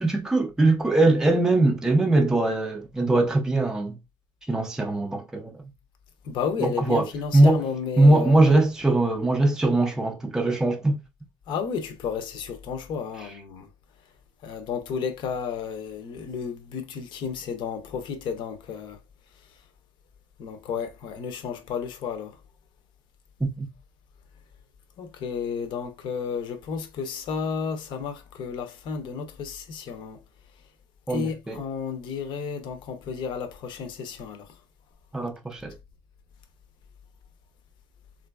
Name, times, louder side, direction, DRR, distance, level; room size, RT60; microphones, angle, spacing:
voice 1, 0.0-4.0 4.5-5.7 6.6-7.1 7.3-7.6 8.0-11.0 13.2-13.3 23.6-23.7 31.1-31.6 35.1-35.7, right 2 dB, 5° right, 0.5 m, -21 dB
voice 2, 6.2-8.5 11.5-13.7 14.4-19.0 20.4-22.3 25.0-30.2 31.1-34.5, left 6 dB, 55° left, 0.7 m, -32 dB
3.7 x 2.6 x 2.2 m
cardioid pair, 155°, 10 cm